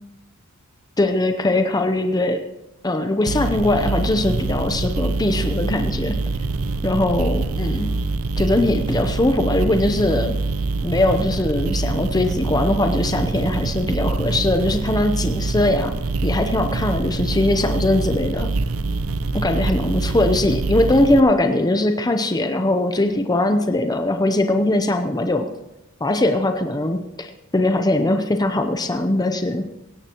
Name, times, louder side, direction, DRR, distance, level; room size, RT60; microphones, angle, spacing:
voice 1, 1.0-2.4 2.8-6.2 6.8-7.9 8.4-10.4 10.8-15.9 16.2-18.5 19.3-25.5 26.0-29.7, left 1 dB, 20° left, 6 dB, 0.7 m, -20 dB
sound 1, 3.3-21.2, right 3 dB, 75° right, 0.7 m, -25 dB
17.5 x 17.0 x 3.0 m, 0.90 s
head